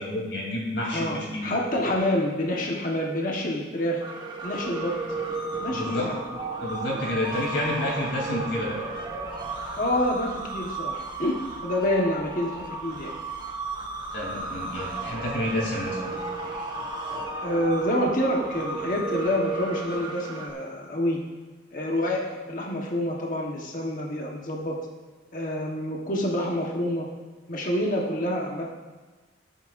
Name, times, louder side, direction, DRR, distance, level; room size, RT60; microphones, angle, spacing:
voice 1, 0.0-1.5 5.7-6.1 6.6-8.8 14.1-16.2, left 1 dB, 65° left, -3 dB, 3.2 m, -29 dB
voice 2, 0.9-4.0 4.4-5.0 5.6-6.2 9.8-13.1 17.4-21.2 21.7-22.2 22.5-24.8 25.3-27.1 27.5-28.7, left 1 dB, 45° left, -2 dB, 1.3 m, -27 dB
sound 1, 4.0-20.5, right 2 dB, 25° right, 1.3 m, -34 dB
18.5 x 9.1 x 2.6 m, 1.3 s
head